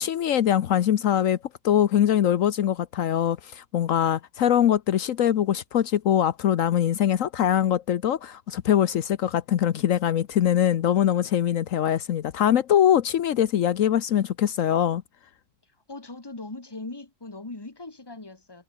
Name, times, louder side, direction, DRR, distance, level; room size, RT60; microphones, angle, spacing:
voice 1, 0.0-1.4 1.6-15.0, left 10 dB, 75° left, 1.2 m, -22 dB
voice 2, 15.9-18.6, left 2 dB, 20° left, 1.8 m, -39 dB
omnidirectional pair, 1.4 m